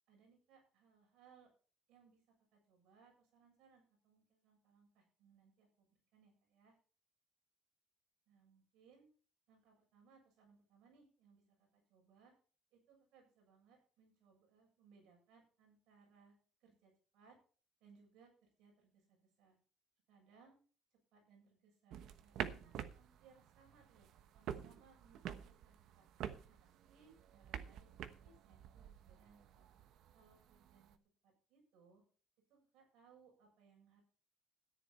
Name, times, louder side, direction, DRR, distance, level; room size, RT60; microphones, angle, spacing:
voice 1, 0.1-1.5 1.9-2.2 2.5-6.7 8.3-9.1 9.5-12.3 12.7-17.4 17.8-19.6 20.1-20.6 21.1-24.1 24.3-26.1 26.5-29.7 30.1-31.0 31.2-32.0 32.5-34.0, right 5 dB, 75° right, 1 dB, 7.6 m, -68 dB
sound 1, 21.9-31.0, right 10 dB, 55° right, 1.0 m, -49 dB
13.5 x 10.5 x 4.4 m, 0.40 s
cardioid pair, 180°, 0 cm